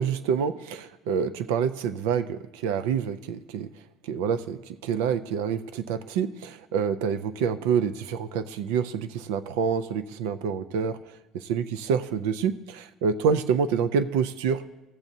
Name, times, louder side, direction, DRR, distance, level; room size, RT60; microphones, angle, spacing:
voice 1, 0.0-3.7 4.0-11.0 11.3-14.6, right 7 dB, 85° right, 12 dB, 0.4 m, -27 dB
15.5 x 7.2 x 2.7 m, 1.0 s
supercardioid pair, 85°, 0 cm